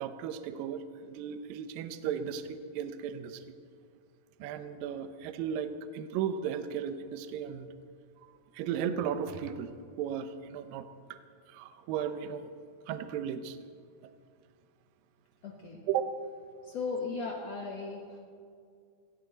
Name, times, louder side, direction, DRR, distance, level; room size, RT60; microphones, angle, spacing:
voice 1, 0.0-3.4 4.4-7.7 8.5-9.7 10.0-11.2 11.5-12.5 12.9-13.6 15.9-16.1, right 8 dB, 80° right, 9 dB, 2.1 m, -35 dB
voice 2, 15.4-15.8 16.7-18.2, left 4 dB, 90° left, -1 dB, 1.4 m, -37 dB
19.0 x 16.0 x 4.0 m, 2.2 s
omnidirectional pair, 5.0 m